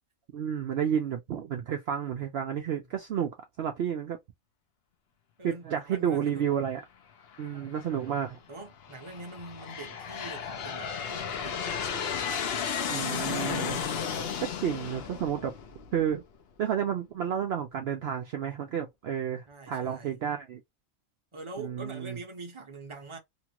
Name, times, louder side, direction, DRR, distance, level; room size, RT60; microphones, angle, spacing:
voice 1, 0.3-3.3 3.6-4.2 5.4-6.8 7.4-8.4 12.9-13.8 14.4-15.5 15.9-16.2 16.6-20.6 21.6-22.2, right 8 dB, 65° right, 0.7 m, -31 dB
voice 2, 5.4-6.5 7.4-7.8 8.5-11.7 19.5-20.2 21.3-23.2, right 3 dB, 30° right, 0.7 m, -44 dB
Aircraft, 7.3-7.9 8.6-16.2, left 7 dB, 60° left, 0.8 m, -34 dB
2.9 x 2.4 x 2.8 m
omnidirectional pair, 1.3 m